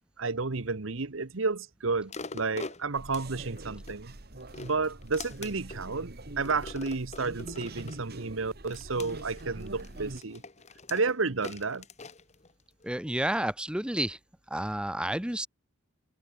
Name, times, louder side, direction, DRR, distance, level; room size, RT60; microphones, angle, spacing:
voice 1, 0.2-4.1 4.5-10.4 10.9-11.8, right 4 dB, 70° right, 1.1 m, -31 dB
sound 1, 2.1-4.0 4.4-5.8 6.4-8.0 8.7-12.9 13.4-13.5, left 3 dB, 35° left, 1.6 m, -44 dB
sound 2, 2.9-10.2, right 1 dB, 50° right, 2.0 m, -44 dB
voice 2, 12.8-14.2 14.5-15.5, right 1 dB, 5° right, 0.8 m, -30 dB
head